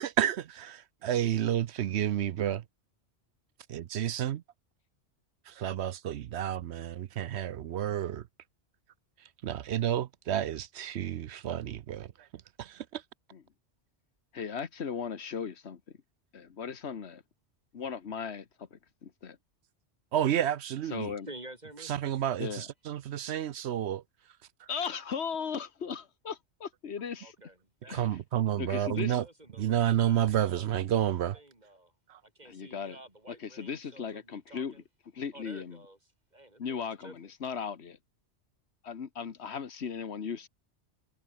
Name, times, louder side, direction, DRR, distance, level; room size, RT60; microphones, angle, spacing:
voice 1, 0.0-2.6 3.7-4.4 5.5-8.2 9.4-12.1 12.6-13.0 20.1-21.1 21.9-24.0 27.9-29.2 29.6-31.4 32.1-32.2, right 11 dB, 70° right, 0.9 m, -30 dB
voice 2, 14.3-15.8 16.3-17.2 17.7-19.4 20.9-21.3 22.4-22.7 24.7-27.3 27.9-28.1 28.5-29.2 32.4-33.0 33.3-34.8 35.1-35.8 36.6-38.0 38.8-40.5, left 6 dB, 70° left, 1.5 m, -37 dB
voice 3, 21.3-21.9 27.2-28.1 28.9-31.9 32.2-34.8 35.3-36.0 36.3-37.3, right 1 dB, 40° right, 4.8 m, -51 dB
omnidirectional pair, 1.2 m